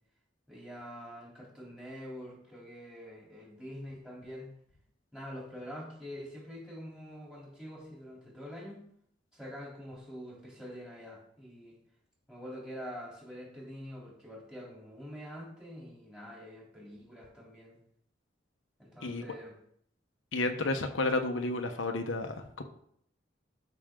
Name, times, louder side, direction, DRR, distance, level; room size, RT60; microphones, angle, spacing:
voice 1, 0.5-4.5 5.1-8.8 9.3-11.8 12.3-17.8 18.8-19.6, equal, 5° right, -4 dB, 3.3 m, -45 dB
voice 2, 20.3-22.6, left 2 dB, 90° left, 5 dB, 1.0 m, -31 dB
12.5 x 6.0 x 3.8 m, 0.67 s
head